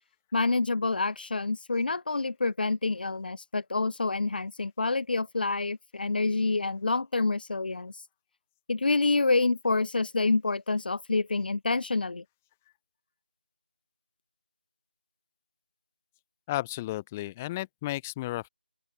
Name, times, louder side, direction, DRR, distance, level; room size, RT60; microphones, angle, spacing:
voice 1, 0.3-8.0 8.7-12.2, left 3 dB, 60° left, 0.8 m, -27 dB
voice 2, 16.5-18.5, left 16 dB, 10° left, 1.7 m, -33 dB
open air
figure-of-eight pair, 170°, 6 cm